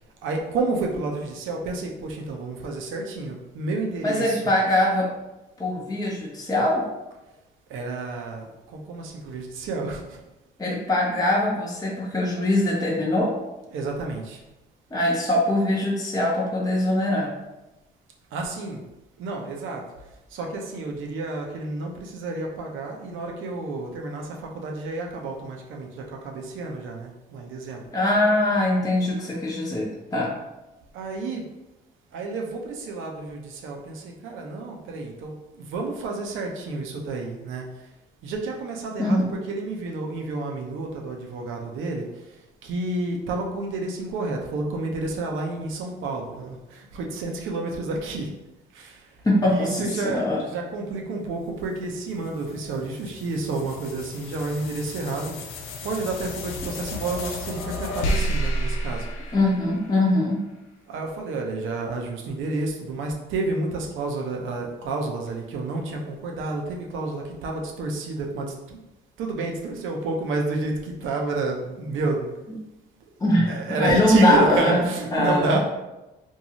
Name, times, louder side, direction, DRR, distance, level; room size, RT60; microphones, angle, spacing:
voice 1, 0.2-4.5 7.7-10.2 13.7-14.4 18.3-18.8 19.2-19.8 20.3-27.9 30.9-31.4 32.1-37.9 38.2-48.3 48.7-49.1 49.5-55.5 55.8-59.4 60.9-68.8 69.2-72.3 73.4-75.6, right 3 dB, 70° right, 1 dB, 0.6 m, -30 dB
voice 2, 4.0-5.1 5.6-6.8 10.6-13.3 14.9-17.3 27.9-30.3 39.0-39.3 49.2-50.4 59.3-60.4 73.2-75.6, left 1 dB, 15° left, -4 dB, 0.7 m, -22 dB
sound 1, 51.6-60.2, equal, 80° left, 0.5 m, -32 dB
2.7 x 2.3 x 2.9 m, 1.0 s
supercardioid pair, 60°, 21 cm